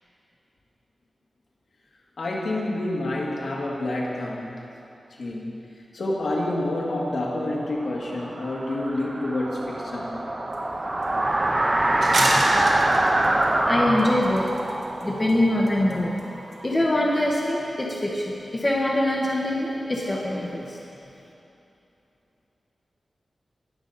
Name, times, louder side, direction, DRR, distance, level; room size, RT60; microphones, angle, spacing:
voice 1, 2.2-4.5 5.2-5.7 5.9-10.2, left 1 dB, 65° left, -3 dB, 1.8 m, -28 dB
sound 1, 7.9-16.6, right 1 dB, 25° right, 0.6 m, -24 dB
sound 2, 10.5-10.6 11.0-11.1 12.0-13.5 14.0-15.0 15.3-15.4 15.7-16.2 16.5-16.6, right 2 dB, 65° right, 1.6 m, -27 dB
voice 2, 12.1-12.4 13.6-14.5 15.0-16.2 16.5-20.8, left 1 dB, 20° left, -3 dB, 1.1 m, -24 dB
18.5 x 7.2 x 4.1 m, 2.8 s
wide cardioid pair, 140°, 0 cm